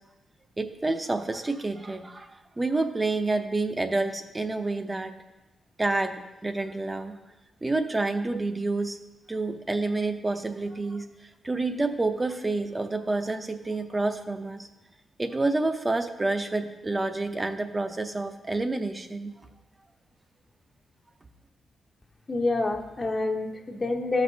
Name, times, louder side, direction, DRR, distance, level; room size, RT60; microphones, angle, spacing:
voice 1, 0.6-5.1 5.8-7.2 7.6-9.0 9.3-14.7 15.2-19.5, right 2 dB, 20° right, 8 dB, 0.6 m, -29 dB
voice 2, 22.3-24.2, left 2 dB, 30° left, 2 dB, 0.7 m, -27 dB
13.0 x 6.1 x 2.7 m, 1.0 s
cardioid pair, 100°, 0 cm